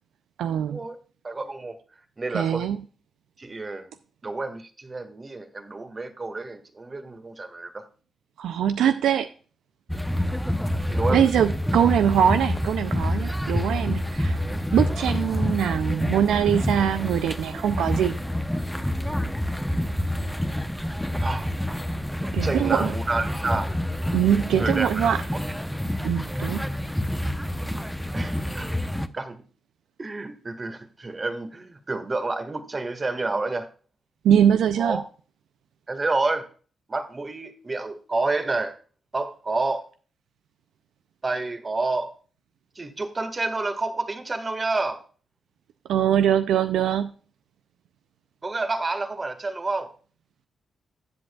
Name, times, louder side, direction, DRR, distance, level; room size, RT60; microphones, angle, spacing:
voice 1, 0.4-0.8 2.3-2.8 8.4-9.3 11.1-14.4 14.7-18.2 22.3-22.9 24.1-25.2 26.0-26.6 34.2-35.0 45.9-47.1, right 9 dB, 80° right, 11 dB, 0.4 m, -22 dB
voice 2, 1.2-1.8 2.2-2.7 3.4-3.9 4.2-7.9 10.9-11.3 21.2-21.5 22.2-23.7 24.6-25.2 28.1-28.7 29.1-29.4 30.0-33.7 34.8-35.0 35.9-36.5 36.9-38.8 39.1-39.9 41.2-42.1 42.8-45.0 48.4-49.9, right 3 dB, 35° right, 9 dB, 1.7 m, -29 dB
sound 1, 9.9-29.1, left 1 dB, ahead, 0.7 m, -27 dB
13.5 x 7.9 x 2.3 m, 0.38 s
supercardioid pair, 50°, 0 cm